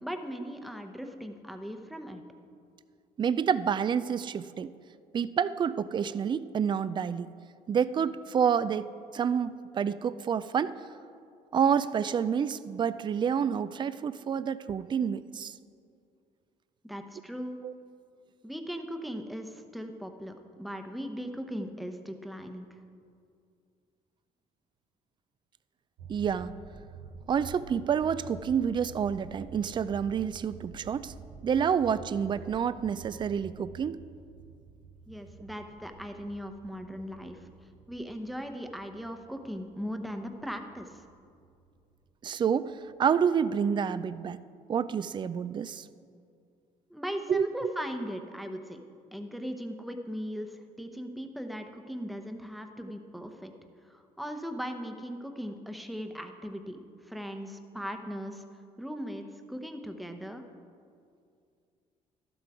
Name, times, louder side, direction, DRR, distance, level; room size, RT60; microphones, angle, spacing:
voice 1, 0.0-2.2 16.8-17.6 18.4-22.8 35.1-37.5 37.9-41.0 46.9-48.8 49.1-53.5 53.8-58.4 58.8-60.4, equal, ahead, 5 dB, 0.9 m, -38 dB
voice 2, 3.2-4.7 5.1-7.3 7.7-10.8 11.5-15.5 17.6-17.7 26.1-26.6 27.3-31.1 31.4-34.0 42.2-42.7 43.0-44.4 44.7-45.8 47.3-47.7, right 7 dB, 30° right, 15 dB, 0.4 m, -28 dB
sound 1, 26.0-42.0 42.2-42.3 42.6-42.7 43.0-43.2 43.5-43.7 44.1-44.2, right 6 dB, 85° right, 0.8 m, -49 dB
12.0 x 7.7 x 4.8 m, 2.4 s
cardioid pair, 85°, 15 cm